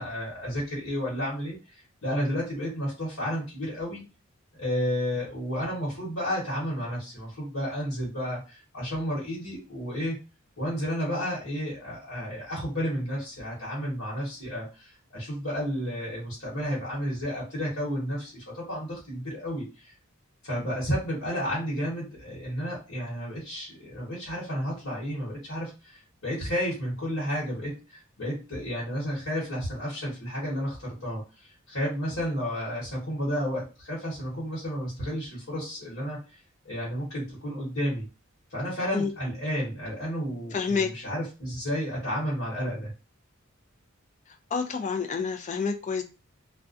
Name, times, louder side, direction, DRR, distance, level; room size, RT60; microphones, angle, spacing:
voice 1, 0.0-4.0 4.5-10.2 10.6-19.9 20.4-36.4 36.6-38.1 38.5-42.9, equal, 75° left, -8 dB, 1.1 m, -32 dB
voice 2, 40.5-40.9 44.5-46.0, left 5 dB, 35° left, 6 dB, 0.3 m, -28 dB
2.4 x 2.1 x 2.5 m, 0.30 s
head